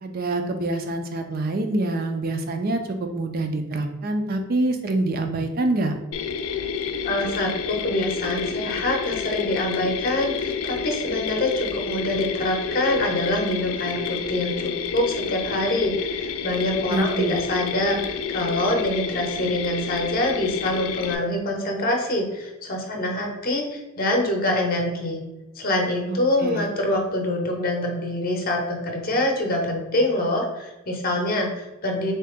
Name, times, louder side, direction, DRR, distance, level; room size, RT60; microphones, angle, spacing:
voice 1, 0.0-5.9 16.9-17.4 26.1-26.7, right 2 dB, 45° right, 6 dB, 0.4 m, -26 dB
Mechanisms, 6.1-21.1, left 6 dB, 75° left, 0.3 m, -29 dB
voice 2, 7.0-25.2 25.6-32.1, left 1 dB, 40° left, 2 dB, 0.7 m, -25 dB
4.0 x 2.8 x 3.5 m, 1.0 s
head